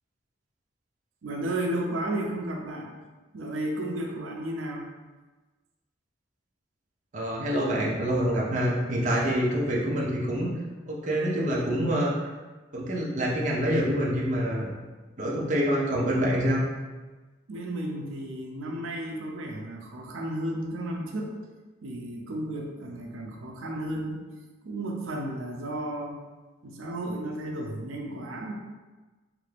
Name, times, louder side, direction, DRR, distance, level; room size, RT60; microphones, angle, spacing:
voice 1, 1.2-2.9 3.3-4.9 17.5-21.3 21.8-24.2 24.6-26.2 26.6-28.5, right 1 dB, 90° right, 0 dB, 0.5 m, -33 dB
voice 2, 7.1-10.5 10.9-12.3 12.7-14.7 15.2-16.6, equal, 40° right, -4 dB, 0.5 m, -26 dB
3.2 x 2.5 x 3.2 m, 1.2 s
head